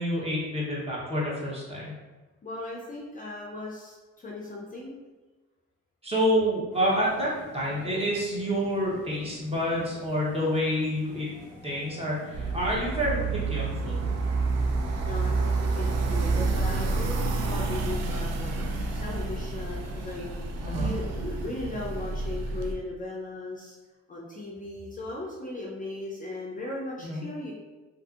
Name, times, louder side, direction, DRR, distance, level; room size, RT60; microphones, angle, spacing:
voice 1, 0.0-1.9 6.0-11.3 11.6-13.9 20.6-20.9 27.0-27.2, equal, 20° right, -5 dB, 0.8 m, -28 dB
voice 2, 2.4-5.0 15.0-23.8 24.1-27.5, left 2 dB, 25° left, -4 dB, 0.5 m, -37 dB
sound 1, 6.7-20.7, left 1 dB, 5° left, 0.9 m, -49 dB
sound 2, 12.3-22.7, right 3 dB, 60° right, 0.4 m, -29 dB
2.6 x 2.5 x 2.4 m, 1.2 s
cardioid pair, 90°, 30 cm